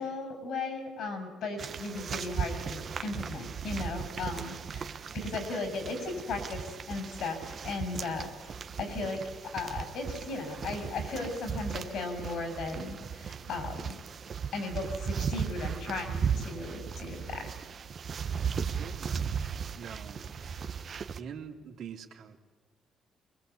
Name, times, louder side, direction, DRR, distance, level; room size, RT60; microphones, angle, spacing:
voice 1, 0.0-14.0 14.5-17.5, left 3 dB, 75° left, 6 dB, 6.6 m, -36 dB
sound 1, 1.6-21.2, right 6 dB, 50° right, 1.3 m, -37 dB
voice 2, 18.7-20.3 21.2-22.4, right 7 dB, 75° right, 3 dB, 3.0 m, -45 dB
24.0 x 21.0 x 8.5 m, 1.4 s
cardioid pair, 90°, 0 cm